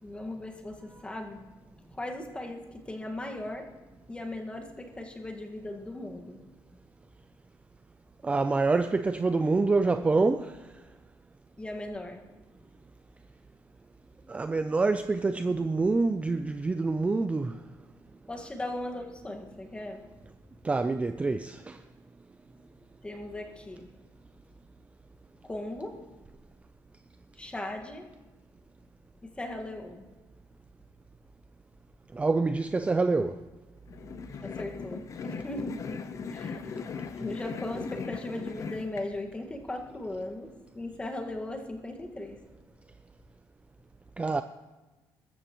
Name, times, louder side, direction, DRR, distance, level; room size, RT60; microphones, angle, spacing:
voice 1, 0.0-1.5 1.9-3.7 4.1-6.4 11.6-12.2 18.3-20.1 23.0-23.9 25.4-26.0 27.3-28.1 29.2-30.0 34.4-35.8 36.3-42.4, left 1 dB, 15° left, 1.7 m, -38 dB
voice 2, 8.2-10.9 14.3-17.6 20.6-21.8 32.1-33.5 44.2-44.4, right 3 dB, 15° right, 0.4 m, -26 dB
sound 1, 33.9-39.0, left 5 dB, 40° left, 0.8 m, -38 dB
22.5 x 13.5 x 3.0 m
cardioid pair, 130°, 8 cm